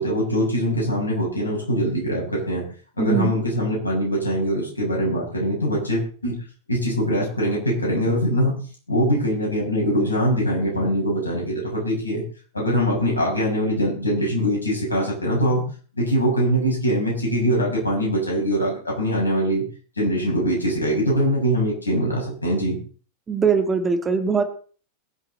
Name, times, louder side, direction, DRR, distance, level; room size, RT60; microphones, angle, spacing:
voice 1, 0.0-2.6 3.0-6.4 6.7-8.5 8.9-12.2 12.5-15.6 16.0-19.6 20.0-22.8, equal, 80° left, -2 dB, 7.5 m, -22 dB
voice 2, 3.0-3.3 23.3-24.4, right 5 dB, 15° right, 6 dB, 2.0 m, -21 dB
22.0 x 8.1 x 4.1 m, 0.40 s
figure-of-eight pair, 90°, 0 cm